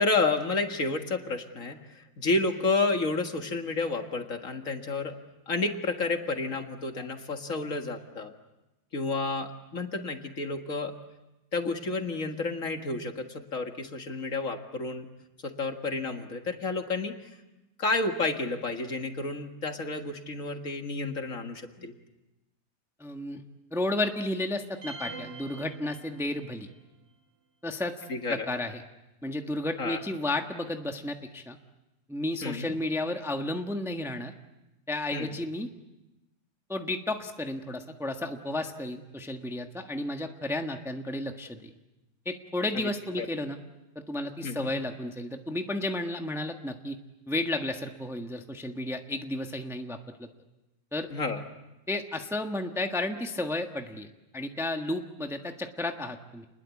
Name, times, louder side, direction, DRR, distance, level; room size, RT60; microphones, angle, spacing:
voice 1, 0.0-5.1 5.5-8.3 8.9-10.9 11.5-15.1 15.4-17.3 17.8-21.9 28.1-28.5 29.8-30.0 32.4-32.7 35.1-35.3 42.7-42.9 43.2-43.3 44.4-44.7 51.1-51.4, left 3 dB, 50° left, 5 dB, 2.1 m, -30 dB
voice 2, 23.0-23.4 23.7-26.7 27.6-28.8 29.2-31.6 32.1-34.3 34.9-35.7 36.7-41.7 42.2-43.6 43.9-47.0 47.3-50.3 50.9-51.1 51.9-54.1 54.3-56.5, left 2 dB, ahead, 4 dB, 1.3 m, -32 dB
sound 1, 24.8-26.6, right 4 dB, 80° right, 3.1 m, -43 dB
29.5 x 21.0 x 8.4 m, 1.0 s
omnidirectional pair, 1.8 m